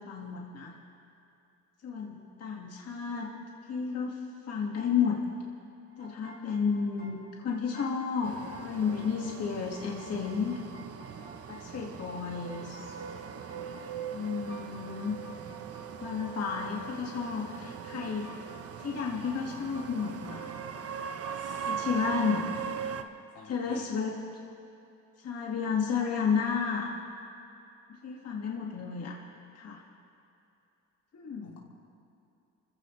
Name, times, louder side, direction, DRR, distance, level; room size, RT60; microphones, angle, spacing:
voice 1, 0.1-0.8 1.8-3.3 3.7-4.2 4.5-5.2 6.0-10.6 11.5-12.9 14.1-15.2 16.0-18.3 18.8-20.5 21.7-22.5 23.5-24.2 25.2-26.9 28.0-29.1 29.6-29.8 31.1-31.6, left 6 dB, 55° left, -2 dB, 2.0 m, -32 dB
sound 1, 5.9-22.4, right 1 dB, 30° right, 4.0 m, -52 dB
sound 2, 8.2-23.0, right 7 dB, 50° right, 0.9 m, -40 dB
voice 2, 21.3-22.1 23.3-23.9 31.4-31.6, left 5 dB, 85° left, -3 dB, 2.9 m, -51 dB
27.0 x 15.5 x 3.2 m, 2.8 s
cardioid pair, 90°, 30 cm